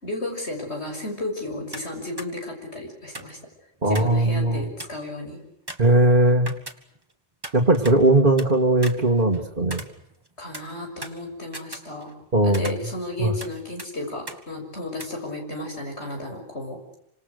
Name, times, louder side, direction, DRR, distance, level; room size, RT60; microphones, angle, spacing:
voice 1, 0.0-3.4 3.9-5.4 10.4-12.1 12.4-16.8, left 2 dB, 75° left, 2 dB, 6.9 m, -33 dB
sound 1, 1.7-1.9 2.2-2.3 3.1-4.2 4.5-4.6 4.8-5.1 5.7-7.1 7.4-8.5 8.8-10.3 10.5-12.2 12.5-13.5 13.8-13.9 14.3-14.4 15.0-15.1, right 1 dB, 20° right, 1.8 m, -39 dB
voice 2, 3.8-4.6 5.8-6.5 7.5-9.8 12.3-12.8 13.2-13.4, right 2 dB, 50° right, -2 dB, 2.1 m, -19 dB
28.0 x 26.0 x 6.6 m, 0.77 s
omnidirectional pair, 1.1 m